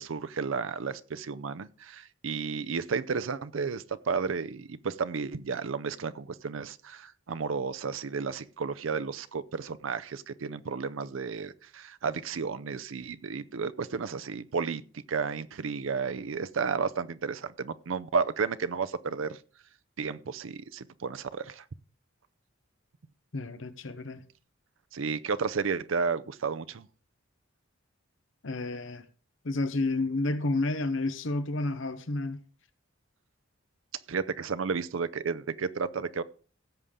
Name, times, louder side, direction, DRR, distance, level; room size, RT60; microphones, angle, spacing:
voice 1, 0.0-19.4 20.0-21.6 24.9-26.9 34.1-36.2, right 5 dB, 75° right, 0.5 m, -32 dB
voice 2, 23.3-24.2 28.4-29.1 29.4-32.4, left 2 dB, 70° left, 0.9 m, -30 dB
16.5 x 6.9 x 3.7 m
head